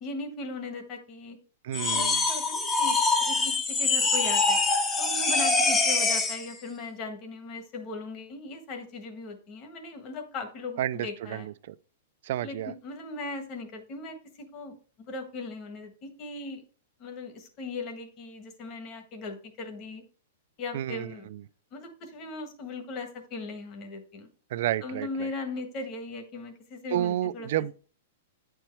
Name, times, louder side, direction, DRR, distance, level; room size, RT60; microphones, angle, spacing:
voice 1, 0.0-1.4 1.8-4.6 5.0-11.5 12.4-14.7 15.1-16.6 17.0-20.0 20.6-21.3 21.7-24.3 24.8-27.5, left 3 dB, 30° left, 1.4 m, -38 dB
voice 2, 1.6-2.2 10.8-11.7 12.2-12.7 20.7-21.4 24.5-25.3 26.9-27.7, right 12 dB, 55° right, 0.4 m, -31 dB
sound 1, 1.7-6.5, left 3 dB, 15° left, 0.7 m, -24 dB
9.0 x 4.5 x 3.4 m
hypercardioid pair, 160°, 0 cm